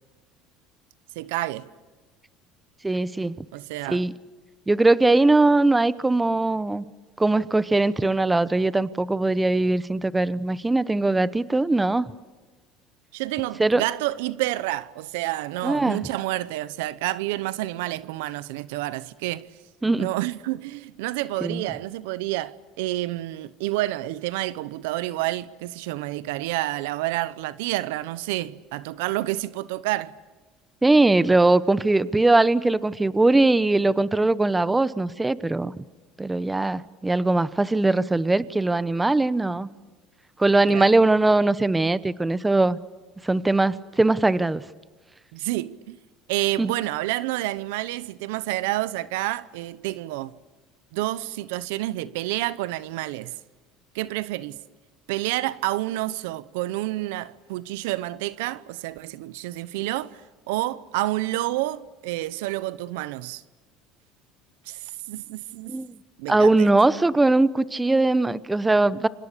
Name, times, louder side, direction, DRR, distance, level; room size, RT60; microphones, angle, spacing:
voice 1, 1.1-1.7 3.5-4.0 13.1-19.5 20.0-30.1 40.7-40.9 45.3-46.0 46.3-50.3 50.9-53.3 53.9-54.6 55.1-60.2 60.5-63.4 64.7-65.8 66.2-66.7, right 17 dB, 85° right, 0.9 m, -29 dB
voice 2, 2.8-3.3 3.9-4.1 4.7-6.8 7.2-12.1 13.6-13.8 15.6-16.0 19.8-20.1 21.4-21.6 30.8-35.7 36.2-39.7 40.4-42.8 43.2-44.6 46.6-46.7 65.7-65.9 66.3-69.1, right 2 dB, 10° right, 1.0 m, -20 dB
30.0 x 26.0 x 6.8 m
supercardioid pair, 100°, 0 cm